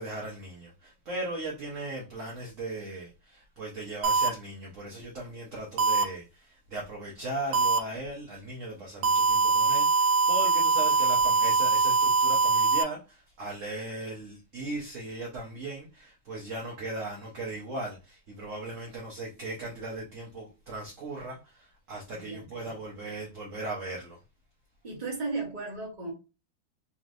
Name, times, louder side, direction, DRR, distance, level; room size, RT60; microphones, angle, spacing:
voice 1, 0.0-24.2, right 2 dB, 50° right, 1.1 m, -38 dB
sound 1, 4.0-4.3 5.8-6.0 7.5-7.8 9.0-12.8, right 4 dB, 80° right, 1.3 m, -23 dB
voice 2, 22.1-22.7 24.8-26.1, right 3 dB, 25° right, 1.4 m, -35 dB
4.1 x 3.1 x 2.6 m
omnidirectional pair, 2.0 m